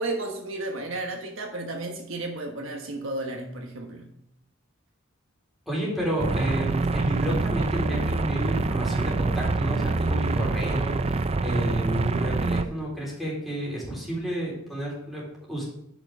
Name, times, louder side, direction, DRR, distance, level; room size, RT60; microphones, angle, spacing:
voice 1, 0.0-4.1, right 2 dB, 65° right, 2 dB, 1.3 m, -33 dB
voice 2, 5.7-15.2 15.5-15.6, right 1 dB, ahead, -6 dB, 3.7 m, -30 dB
sound 1, 6.2-12.6, right 3 dB, 30° right, 0.4 m, -26 dB
10.5 x 6.1 x 3.7 m, 0.79 s
head